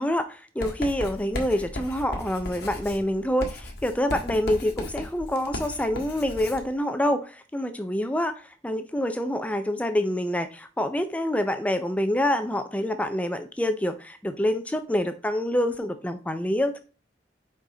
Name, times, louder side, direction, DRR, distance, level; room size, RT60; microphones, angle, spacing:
voice 1, 0.0-16.8, left 1 dB, 10° left, 0.4 m, -26 dB
Writing, 0.6-6.7, left 1 dB, 60° left, 1.6 m, -36 dB
6.6 x 4.8 x 3.8 m
head